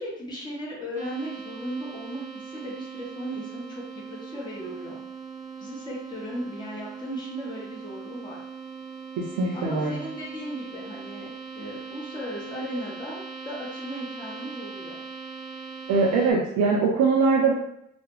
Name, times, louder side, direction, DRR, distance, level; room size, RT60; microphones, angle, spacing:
voice 1, 0.0-5.0 5.6-8.4 9.5-15.0, equal, 15° left, -5 dB, 0.7 m, -37 dB
sound 1, 1.0-16.3, right 5 dB, 25° right, 0.5 m, -40 dB
voice 2, 9.4-9.9 15.9-17.5, right 4 dB, 85° right, -2 dB, 0.5 m, -21 dB
2.3 x 2.1 x 2.9 m, 0.75 s
cardioid pair, 90°, 30 cm